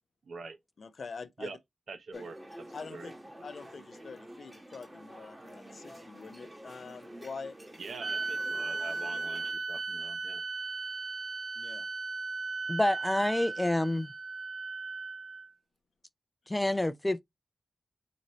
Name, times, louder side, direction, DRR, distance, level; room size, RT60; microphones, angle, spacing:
voice 1, 0.2-0.6 1.4-1.6 1.9-2.4 2.7-3.1 3.4-3.5 7.8-10.4, right 4 dB, 80° right, 0.9 m, -44 dB
voice 2, 0.8-1.5 2.1-2.3 2.7-3.1 3.4-7.6 11.6-11.9, left 5 dB, 65° left, 0.6 m, -45 dB
sound 1, 2.1-9.5, right 1 dB, 20° right, 1.3 m, -49 dB
sound 2, 8.0-15.5, right 3 dB, 50° right, 0.5 m, -36 dB
voice 3, 12.7-14.1 16.5-17.2, left 1 dB, 15° left, 0.5 m, -28 dB
5.1 x 2.7 x 3.0 m
wide cardioid pair, 75°, 0 cm